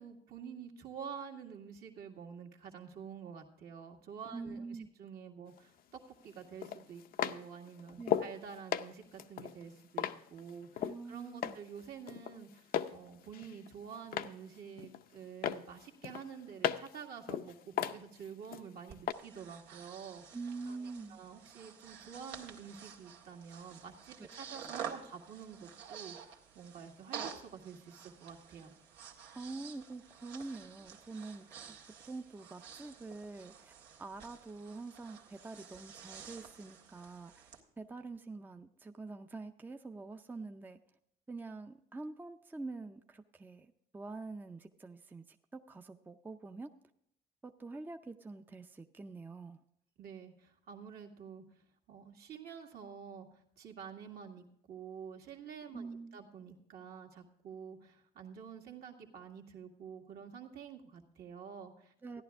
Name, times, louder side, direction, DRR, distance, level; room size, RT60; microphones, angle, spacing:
voice 1, 0.0-20.2 20.7-20.8 21.1-28.7 50.0-51.4 51.9-62.2, right 7 dB, 65° right, 2 dB, 1.9 m, -49 dB
voice 2, 4.3-4.9 8.0-8.3 10.8-11.6 20.3-21.2 24.2-24.3 29.3-33.7 34.0-40.8 41.3-46.7 47.4-49.6 55.7-56.2 62.0-62.2, right 3 dB, 10° right, 6 dB, 0.5 m, -46 dB
sound 1, 5.6-5.7 6.6-8.4 8.7-11.0 11.4-11.8 12.1-13.0 13.3-14.4 14.8-15.2 15.4-17.0 17.3-18.6 19.1-19.2, left 10 dB, 60° left, 0.6 m, -36 dB
Breathing, 18.9-37.6, right 7 dB, 85° right, 1.8 m, -50 dB
14.5 x 10.5 x 3.5 m, 0.73 s
cardioid pair, 110°, 17 cm